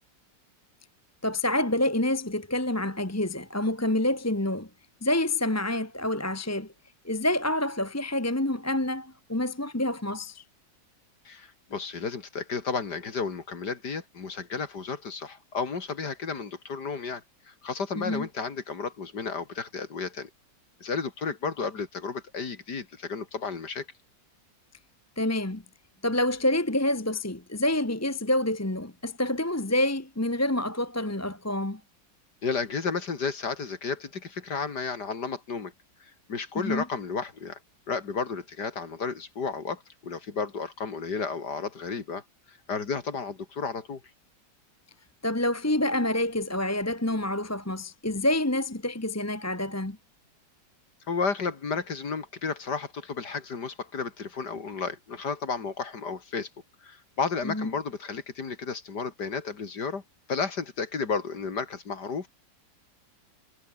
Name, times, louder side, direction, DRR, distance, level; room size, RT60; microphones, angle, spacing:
voice 1, 1.2-4.7 5.0-6.7 7.0-10.4 18.0-18.3 25.2-25.6 26.0-31.8 36.5-36.8 45.2-50.0 57.4-57.7, left 1 dB, 10° left, 1.1 m, -27 dB
voice 2, 11.2-20.3 20.8-23.9 32.4-35.7 36.0-37.6 37.9-42.2 42.5-44.0 51.1-56.5 56.8-60.0 60.3-62.3, left 5 dB, 65° left, 2.9 m, -32 dB
omnidirectional pair, 1.9 m